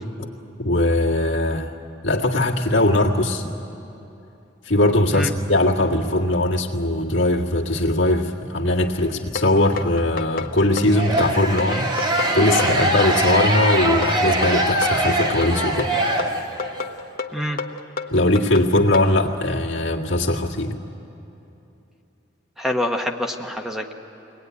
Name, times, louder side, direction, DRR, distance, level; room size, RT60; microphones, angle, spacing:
voice 1, 0.6-1.7 2.0-3.5 4.6-11.9 12.3-15.9 18.1-20.7, left 1 dB, 80° left, -1 dB, 1.8 m, -20 dB
sound 1, 9.4-19.1, left 4 dB, 50° left, 1.0 m, -30 dB
sound 2, 10.9-16.8, right 1 dB, 25° right, 1.5 m, -22 dB
voice 2, 22.6-23.9, left 1 dB, ahead, 3 dB, 0.9 m, -26 dB
23.0 x 18.5 x 9.5 m, 2.9 s
head